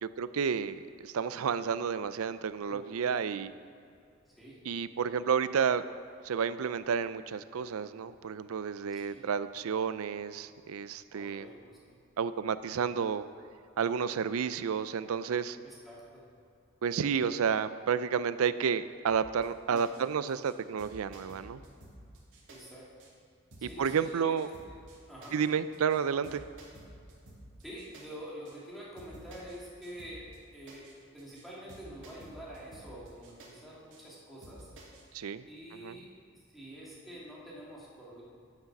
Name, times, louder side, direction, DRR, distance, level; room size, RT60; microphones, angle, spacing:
voice 1, 0.0-3.5 4.6-5.8 6.2-11.5 12.2-13.3 13.8-15.6 16.8-21.6 23.6-24.5 25.3-26.4 35.1-35.4 35.8-36.0, right 6 dB, 85° right, 14 dB, 0.4 m, -31 dB
voice 2, 2.7-3.2 4.3-4.6 8.9-9.2 11.1-12.0 15.6-16.2 19.7-20.1 22.5-22.9 23.6-24.4 25.1-25.4 27.6-30.3 30.5-34.7 35.4-36.1 36.3-38.2, equal, ahead, -7 dB, 2.2 m, -47 dB
sound 1, 19.1-19.5 19.8-20.0 20.3-20.5 20.8-22.6 23.0-23.1 23.5-24.1 24.4-25.0 25.2-25.5 25.7-26.0 26.2-28.0 28.5-28.6 29.0-29.6 29.8-30.4 30.7-30.9 31.2-31.4 31.7-33.5 33.9-34.0 34.4-35.0, right 1 dB, 60° right, 2.6 m, -52 dB
11.0 x 6.6 x 5.9 m, 2.4 s
head